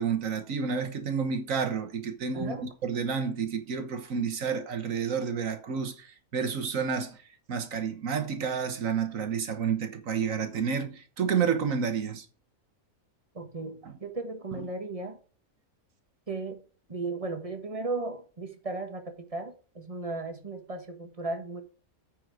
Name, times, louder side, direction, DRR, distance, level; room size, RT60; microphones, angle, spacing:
voice 1, 0.0-7.2 7.5-12.2, right 6 dB, 65° right, 1.5 m, -30 dB
voice 2, 2.3-2.6 13.3-15.2 16.3-16.6 16.9-21.6, right 3 dB, 25° right, 1.5 m, -36 dB
9.2 x 5.5 x 5.0 m
omnidirectional pair, 1.6 m